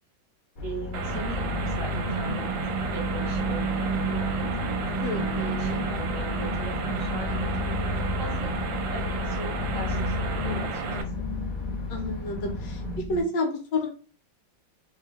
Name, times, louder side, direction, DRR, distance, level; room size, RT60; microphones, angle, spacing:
sound 1, 0.6-13.0, left 2 dB, 85° left, 0.4 m, -35 dB
voice 1, 0.6-8.5 8.9-10.8, right 1 dB, 55° right, -1 dB, 0.9 m, -40 dB
sound 2, 0.9-11.0, right 5 dB, 80° right, 1.4 m, -33 dB
sound 3, 1.0-13.2, right 1 dB, 35° left, 1.4 m, -32 dB
voice 2, 5.0-5.8 11.9-12.8 13.1-13.9, left 2 dB, 70° left, 2 dB, 1.4 m, -30 dB
3.3 x 2.7 x 3.6 m, 0.36 s
omnidirectional pair, 2.1 m